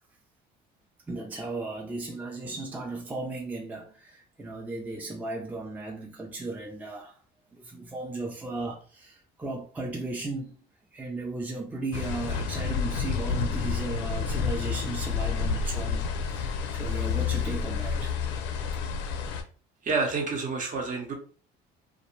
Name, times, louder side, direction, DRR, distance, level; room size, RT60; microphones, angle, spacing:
voice 1, 1.1-7.2 7.5-10.7 10.9-18.4, right 2 dB, 10° right, 0.4 m, -36 dB
sound 1, 11.9-19.4, left 6 dB, 80° left, 0.5 m, -29 dB
voice 2, 19.9-21.1, right 4 dB, 45° right, 0.8 m, -28 dB
2.5 x 2.1 x 3.0 m
supercardioid pair, 100°, 19 cm